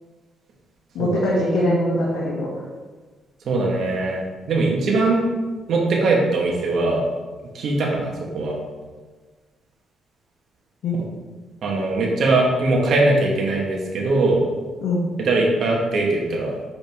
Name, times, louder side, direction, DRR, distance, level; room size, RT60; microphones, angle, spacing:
voice 1, 0.9-2.6 10.8-11.0 14.8-15.1, left 1 dB, 75° left, -4 dB, 1.3 m, -22 dB
voice 2, 3.4-4.2 4.5-5.2 5.7-7.0 7.5-8.5 11.6-14.4 15.2-16.5, right 2 dB, 65° right, -1 dB, 1.6 m, -21 dB
7.0 x 5.2 x 3.6 m, 1.4 s
cardioid pair, 90°, 0 cm